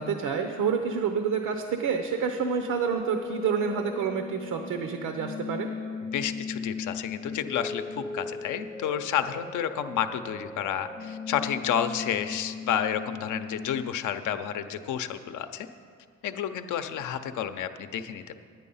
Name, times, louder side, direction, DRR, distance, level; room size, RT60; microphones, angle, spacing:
voice 1, 0.0-5.7, right 6 dB, 80° right, 6 dB, 0.8 m, -28 dB
sound 1, 1.9-13.9, left 5 dB, 10° left, 0.6 m, -38 dB
voice 2, 6.1-15.7 16.2-18.4, left 9 dB, 80° left, 9 dB, 0.7 m, -30 dB
10.0 x 9.4 x 5.5 m, 2.2 s
cardioid pair, 90°, 30 cm